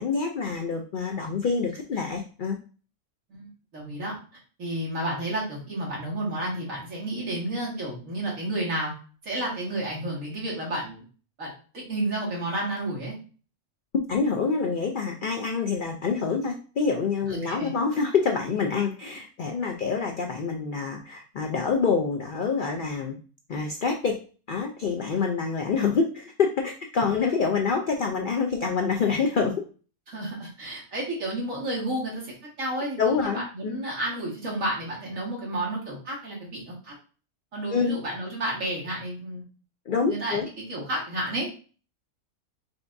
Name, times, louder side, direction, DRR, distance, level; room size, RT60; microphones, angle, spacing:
voice 1, 0.0-2.6 14.1-23.2 23.5-24.2 24.5-29.5 33.0-33.8 37.7-38.0 39.9-40.5, left 5 dB, 75° left, 2 dB, 0.4 m, -26 dB
voice 2, 3.3-4.1 4.6-8.9 9.2-11.0 11.4-13.1 17.3-17.8 30.1-36.9 37.5-39.4 40.0-41.5, right 1 dB, 60° right, -4 dB, 2.2 m, -31 dB
5.3 x 3.4 x 2.6 m, 0.38 s
omnidirectional pair, 1.6 m